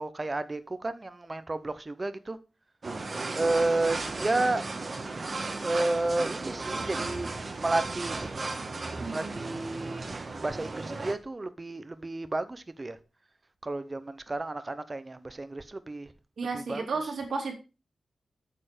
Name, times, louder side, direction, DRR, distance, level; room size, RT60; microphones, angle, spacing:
voice 1, 0.0-2.4 3.3-4.6 5.6-7.3 7.6-8.3 9.1-10.2 10.4-13.0 13.6-16.1 16.5-16.8, right 2 dB, 25° right, 0.7 m, -31 dB
sound 1, 2.8-11.1, right 3 dB, 40° right, 1.2 m, -35 dB
voice 2, 16.4-17.5, right 4 dB, 80° right, 2.8 m, -32 dB
8.7 x 6.9 x 5.0 m
wide cardioid pair, 125°, 0 cm